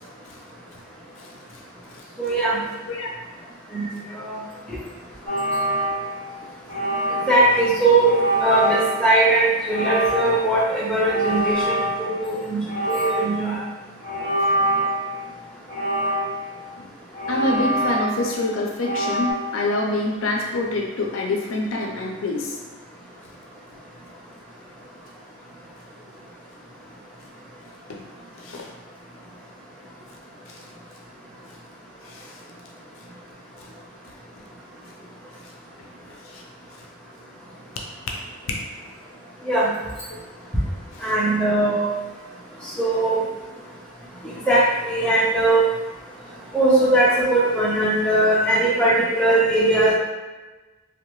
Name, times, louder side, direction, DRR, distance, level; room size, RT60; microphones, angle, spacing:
voice 1, 2.2-2.6 3.7-3.9 4.2-4.4 7.3-8.1 8.4-13.6 39.5-39.7 41.0-41.9 42.8-43.2 44.5-45.6 46.5-49.9, right 2 dB, 5° left, -7 dB, 0.5 m, -20 dB
sound 1, 5.3-6.3 6.7-7.5 8.0-9.1 9.7-10.5 11.0-12.3 12.7-13.5 14.0-15.1 15.7-16.6 17.1-18.4 18.8-19.3, right 1 dB, 70° right, 1.0 m, -25 dB
voice 2, 17.3-22.5 27.9-28.0 28.4-28.7 30.5-30.6 32.0-32.4 36.3-36.4 38.1-38.2 38.5-38.6 40.1-40.2 41.0-41.1, left 2 dB, 75° left, 0 dB, 0.4 m, -26 dB
2.7 x 2.0 x 3.0 m, 1.2 s
head